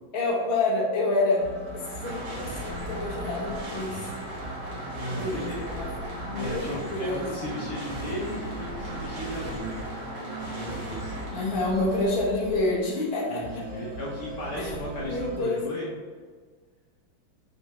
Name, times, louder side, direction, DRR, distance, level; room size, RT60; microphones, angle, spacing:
voice 1, 0.1-1.5 1.7-4.1 5.1-7.3 11.3-13.6 14.5-15.6, left 2 dB, 45° left, -5 dB, 0.8 m, -28 dB
sound 1, 1.3-15.4, right 1 dB, 45° right, 1.9 m, -40 dB
sound 2, 1.5-12.4, right 1 dB, 65° right, 1.5 m, -38 dB
voice 2, 5.0-5.9 6.3-9.8 10.5-11.1 13.3-15.9, equal, 70° left, -5 dB, 0.7 m, -35 dB
4.1 x 3.4 x 2.8 m, 1.5 s
omnidirectional pair, 2.1 m